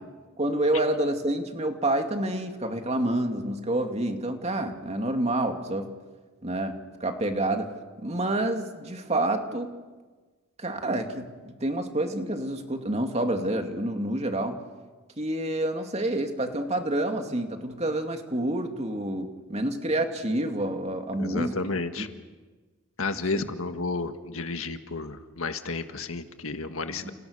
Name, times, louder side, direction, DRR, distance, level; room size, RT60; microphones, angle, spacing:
voice 1, 0.4-5.9 6.4-7.7 8.0-9.7 10.6-14.6 15.2-21.5 22.0-22.1 23.3-23.4 26.9-27.1, right 1 dB, 30° right, 5 dB, 2.5 m, -28 dB
voice 2, 21.2-22.1 23.0-27.1, left 3 dB, 70° left, 7 dB, 1.8 m, -32 dB
30.0 x 29.5 x 6.7 m, 1.3 s
head